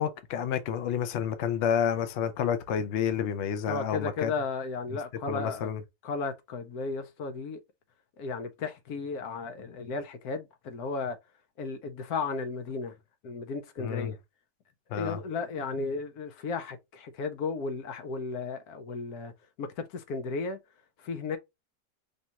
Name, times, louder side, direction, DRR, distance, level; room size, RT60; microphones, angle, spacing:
voice 1, 0.0-4.3 5.3-5.8 13.8-14.1 14.9-15.2, left 8 dB, 90° left, 0.6 m, -29 dB
voice 2, 3.7-5.7 6.0-7.6 8.2-11.2 11.6-12.9 13.2-14.1 14.9-19.3 19.6-20.6 21.0-21.4, left 4 dB, 65° left, 1.1 m, -34 dB
5.2 x 2.4 x 2.8 m
omnidirectional pair, 2.0 m